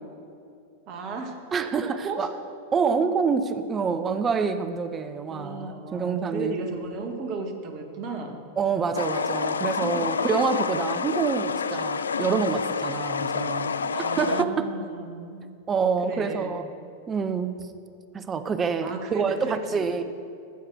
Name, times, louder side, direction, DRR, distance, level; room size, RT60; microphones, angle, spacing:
voice 1, 0.9-1.4 1.8-2.3 5.3-8.4 9.8-10.1 13.9-15.5 16.0-16.5 18.8-20.0, right 3 dB, 40° right, 4 dB, 1.8 m, -35 dB
voice 2, 1.5-2.3 2.7-6.6 8.6-13.7 14.2-14.7 15.7-16.7 17.1-17.6 18.1-20.0, right 5 dB, 20° right, 10 dB, 0.6 m, -27 dB
sound 1, 8.9-14.4, left 5 dB, 70° left, 0.3 m, -28 dB
14.5 x 6.6 x 6.2 m, 2.5 s
figure-of-eight pair, 90°, 0 cm